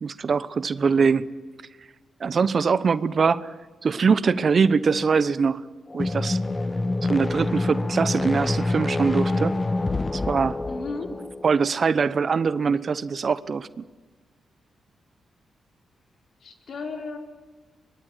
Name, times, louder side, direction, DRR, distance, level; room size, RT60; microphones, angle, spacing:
voice 1, 0.0-1.3 2.2-3.5 3.8-5.6 5.9-6.4 7.1-9.6 10.1-10.6 11.4-13.8, right 5 dB, 55° right, 17 dB, 1.0 m, -22 dB
sound 1, 5.9-11.5, left 2 dB, 30° left, 1.1 m, -26 dB
voice 2, 10.7-11.1 16.4-17.2, left 4 dB, 65° left, 4 dB, 4.3 m, -34 dB
24.0 x 22.5 x 9.4 m, 1.3 s
supercardioid pair, 45°, 0 cm